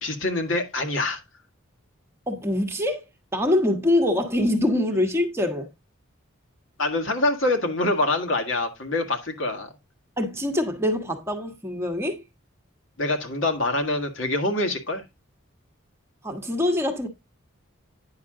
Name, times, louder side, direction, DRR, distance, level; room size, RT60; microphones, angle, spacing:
voice 1, 0.0-1.2 6.8-9.7 13.0-15.0, left 2 dB, 65° left, 1.8 m, -25 dB
voice 2, 2.3-3.1 3.3-5.7 10.2-12.2 16.2-17.1, left 1 dB, 10° right, 1.2 m, -24 dB
9.6 x 6.0 x 3.7 m
head